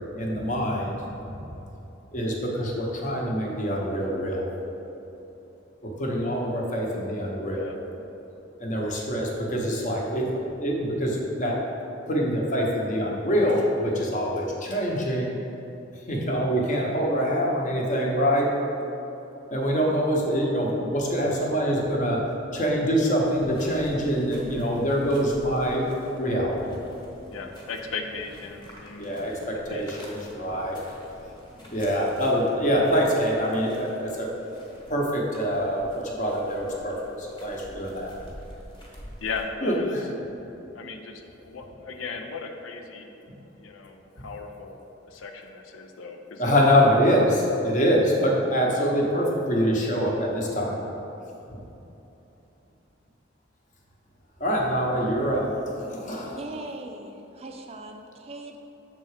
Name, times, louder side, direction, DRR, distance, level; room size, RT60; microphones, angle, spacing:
voice 1, 0.1-1.4 2.1-4.5 5.8-7.7 8.6-10.3 10.6-11.6 12.1-15.4 15.9-18.5 19.5-22.2 22.5-25.9 26.2-26.9 29.0-30.8 31.2-31.3 31.7-34.3 34.9-38.2 39.6-40.0 43.3-43.4 44.2-44.3 46.4-50.8 51.5-51.7 54.4-56.4, equal, 40° left, -2 dB, 0.9 m, -25 dB
sound 1, 23.1-39.4, equal, 20° left, 1.2 m, -48 dB
voice 2, 27.3-29.1 29.7-29.8 39.2-40.0 40.7-43.1 43.6-46.5, left 4 dB, 85° left, 3 dB, 0.5 m, -37 dB
voice 3, 56.3-58.6, right 2 dB, 30° right, 3 dB, 0.4 m, -39 dB
6.6 x 3.8 x 4.9 m, 3.0 s
head